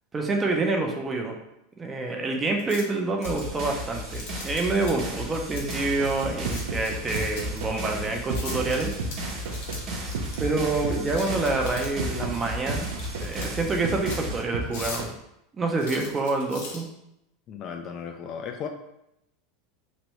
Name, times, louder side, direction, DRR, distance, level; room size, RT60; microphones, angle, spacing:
voice 1, 0.1-1.4 1.8-8.9 10.4-15.1 15.6-16.9, right 3 dB, 20° right, 2 dB, 0.5 m, -27 dB
sound 1, 2.5-2.8 3.2-3.6 4.1-4.9 5.5-7.6 8.3-10.4 11.1-12.1 12.8-13.7 14.0-14.2 14.6-15.1 15.8-16.8, left 4 dB, 80° left, 0.9 m, -40 dB
sound 2, 3.2-14.4, equal, 45° right, 0.9 m, -35 dB
sound 3, 5.8-15.0, right 3 dB, 90° right, 0.5 m, -34 dB
voice 2, 17.5-18.7, left 7 dB, 40° left, 5 dB, 0.4 m, -35 dB
3.1 x 2.5 x 3.0 m, 0.82 s
supercardioid pair, 125°, 0 cm